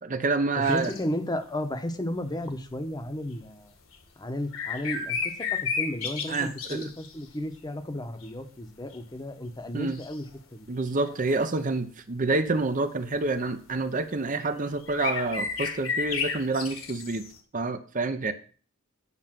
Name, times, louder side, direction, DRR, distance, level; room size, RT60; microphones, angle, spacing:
voice 1, 0.0-0.9 6.3-6.9 9.7-10.0 10.7-17.3 17.5-18.3, right 3 dB, 40° right, 9 dB, 0.7 m, -28 dB
sound 1, 0.6-1.0 3.0-3.1 3.9-4.0 4.5-7.3 8.0-8.4 8.9-9.0 9.9-10.4 11.0-11.3 13.2-13.4 14.5-14.6 14.8-17.4, left 5 dB, 65° left, 1.9 m, -32 dB
voice 2, 0.6-3.7 4.2-10.3 10.5-10.7, left 1 dB, 20° left, 8 dB, 1.0 m, -33 dB
9.8 x 5.5 x 7.5 m, 0.41 s
head